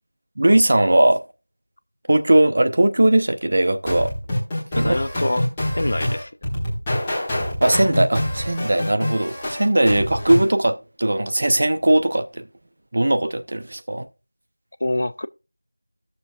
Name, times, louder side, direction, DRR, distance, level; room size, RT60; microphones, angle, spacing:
voice 1, 0.4-1.2 2.1-4.1 4.8-4.9 7.6-12.5 12.9-14.1, right 1 dB, 35° right, 0.6 m, -19 dB
sound 1, 3.9-10.5, left 1 dB, 10° left, 1.5 m, -26 dB
voice 2, 4.7-6.3 14.8-15.3, left 1 dB, 40° left, 0.3 m, -25 dB
16.0 x 6.8 x 2.3 m
figure-of-eight pair, 175°, 0 cm